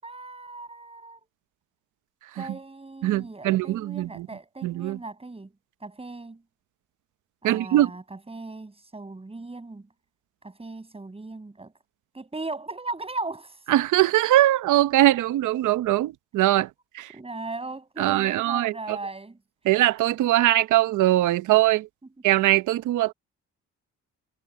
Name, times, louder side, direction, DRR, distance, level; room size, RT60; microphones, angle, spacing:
voice 1, 0.0-1.2 2.3-5.5 5.8-6.4 7.4-9.9 10.4-11.7 12.1-13.6 17.1-19.4, right 3 dB, 20° right, 7.3 m, -37 dB
voice 2, 3.0-4.3 4.6-5.0 7.4-7.9 13.7-16.7 16.9-17.1 18.0-19.0 19.7-21.9 22.2-23.1, right 15 dB, 80° right, 0.8 m, -21 dB
cardioid pair, 90°, 30 cm